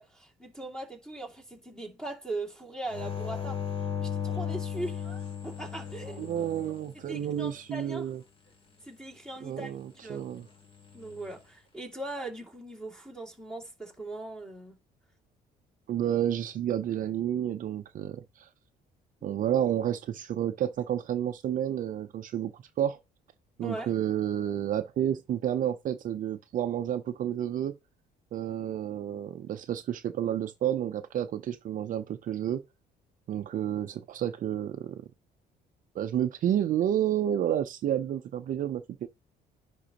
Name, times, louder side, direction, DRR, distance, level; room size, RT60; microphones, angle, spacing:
voice 1, 0.0-3.6 4.0-6.4 7.1-8.1 8.8-9.7 10.0-10.2 10.9-14.8 19.2-19.4 23.6-23.9, right 2 dB, 5° left, 2.4 m, -40 dB
sound 1, 2.9-7.5 10.8-11.3, left 8 dB, 30° left, 2.5 m, -36 dB
voice 2, 6.2-8.2 9.4-10.5 15.9-18.5 19.2-23.0 23.6-27.7 28.3-32.6 33.3-35.0 35.9-39.1, right 10 dB, 50° right, 0.6 m, -30 dB
10.0 x 3.7 x 2.9 m
cardioid pair, 110°, 17 cm